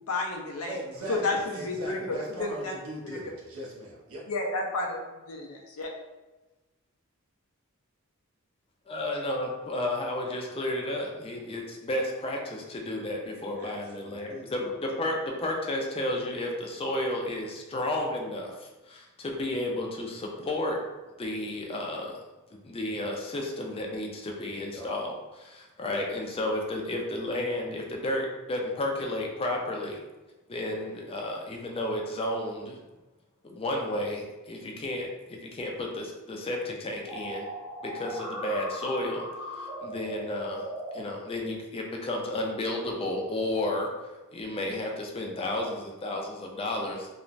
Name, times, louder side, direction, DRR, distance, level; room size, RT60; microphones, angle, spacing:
voice 1, 0.1-0.8 1.1-2.7 4.3-5.0 5.3-5.9, left 2 dB, 80° left, 0 dB, 0.5 m, -31 dB
voice 2, 0.7-4.2 13.6-14.5 24.7-24.9, right 1 dB, 75° right, -3 dB, 0.7 m, -40 dB
voice 3, 8.9-20.8 21.2-22.2 22.5-30.0 30.5-32.8 33.4-37.5 37.9-39.2 39.5-40.7 40.9-43.9 44.3-47.1, left 1 dB, 25° left, 0 dB, 0.4 m, -32 dB
sound 1, 37.1-41.0, equal, 15° right, 0.8 m, -38 dB
3.1 x 2.1 x 2.5 m, 1.1 s
head